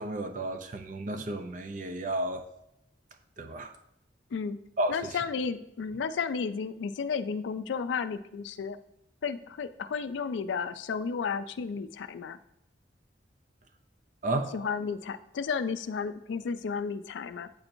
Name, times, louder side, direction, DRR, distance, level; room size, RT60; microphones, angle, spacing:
voice 1, 0.0-2.4 3.4-3.7 4.8-4.9 14.2-14.5, right 1 dB, 45° right, 6 dB, 0.5 m, -32 dB
voice 2, 4.9-8.8 9.2-12.4 14.5-17.5, left 5 dB, 75° left, 12 dB, 0.4 m, -33 dB
8.7 x 4.3 x 2.6 m, 0.79 s
head